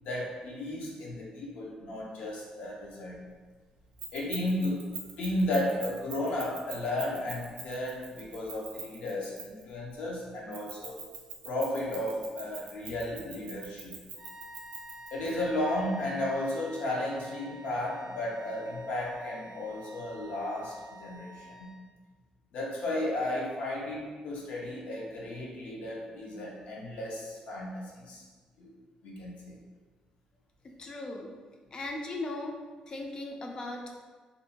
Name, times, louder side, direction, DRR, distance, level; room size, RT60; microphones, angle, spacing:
voice 1, 0.0-3.2 4.1-4.9 5.2-11.0 11.4-14.0 15.1-21.8 22.5-28.2 28.6-28.7 29.0-29.6, left 1 dB, 75° left, -3 dB, 0.6 m, -34 dB
Keys jangling, 4.0-9.7 10.5-15.3, right 6 dB, 75° right, 0.5 m, -43 dB
sound 1, 14.2-22.0, right 1 dB, 20° right, 0.5 m, -49 dB
voice 2, 30.6-31.3 31.7-32.6 32.9-34.0, left 2 dB, 35° left, 2 dB, 0.4 m, -38 dB
2.5 x 2.1 x 2.8 m, 1.4 s
cardioid pair, 130°, 2 cm